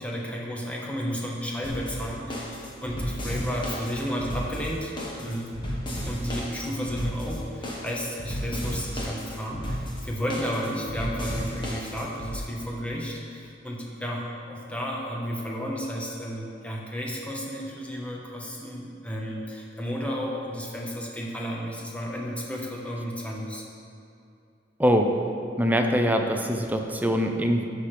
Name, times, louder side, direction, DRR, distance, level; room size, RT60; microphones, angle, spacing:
voice 1, 0.0-5.6 6.0-23.6, equal, 10° left, -3 dB, 1.1 m, -33 dB
sound 1, 1.6-12.3, equal, 25° left, 1.3 m, -33 dB
voice 2, 24.8-25.3 25.6-27.7, equal, 10° right, 3 dB, 0.6 m, -23 dB
14.0 x 6.2 x 3.4 m, 2.5 s
head